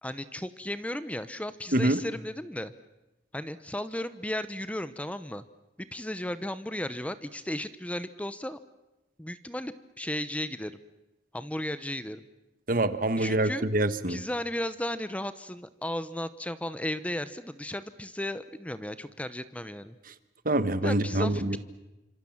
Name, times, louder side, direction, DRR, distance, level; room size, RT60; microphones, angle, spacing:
voice 1, 0.0-2.7 3.3-5.4 5.8-8.6 9.2-10.7 11.3-12.2 13.2-13.6 14.1-19.9 20.8-21.6, left 1 dB, 10° left, 13 dB, 0.9 m, -35 dB
voice 2, 12.7-14.2 20.4-21.6, right 1 dB, 50° right, 12 dB, 1.3 m, -25 dB
28.0 x 26.0 x 7.3 m, 1.0 s
head